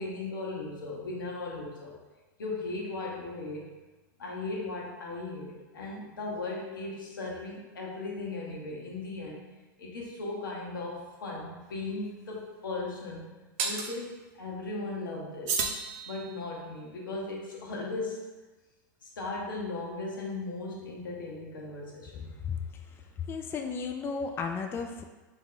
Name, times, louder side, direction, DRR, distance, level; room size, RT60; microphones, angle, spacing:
voice 1, 0.0-1.9 2.4-3.7 4.2-9.4 9.8-13.3 13.6-15.6 16.1-18.3 19.0-22.3, left 2 dB, 85° left, -2 dB, 1.1 m, -37 dB
sound 1, 11.6-11.7 13.6-13.9 15.5-16.6, right 5 dB, 55° right, 0.6 m, -32 dB
voice 2, 23.3-25.0, left 5 dB, 20° left, 4 dB, 0.3 m, -33 dB
3.6 x 3.0 x 3.7 m, 1.2 s
hypercardioid pair, 110°, 11 cm